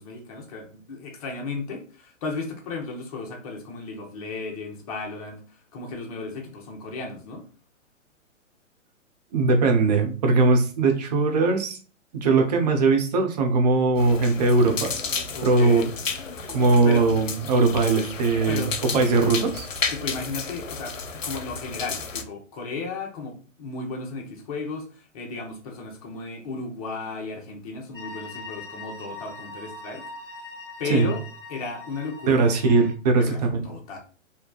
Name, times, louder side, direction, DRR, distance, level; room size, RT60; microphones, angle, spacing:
voice 1, 0.0-7.5 15.3-15.9 16.8-17.1 18.5-19.5 19.9-21.0 21.2-30.0 30.8-31.2 31.5-32.4 33.1-34.0, left 4 dB, 30° left, 0.7 m, -34 dB
voice 2, 9.3-11.8 12.1-14.9 15.4-15.8 16.5-18.7 18.9-19.6 30.8-31.1 32.3-33.7, right 3 dB, 35° right, 0.6 m, -20 dB
sound 1, 14.0-22.2, left 5 dB, 80° left, 0.6 m, -32 dB
sound 2, 27.9-32.9, left 2 dB, 10° left, 1.0 m, -41 dB
3.5 x 2.7 x 2.3 m
figure-of-eight pair, 120°, 38 cm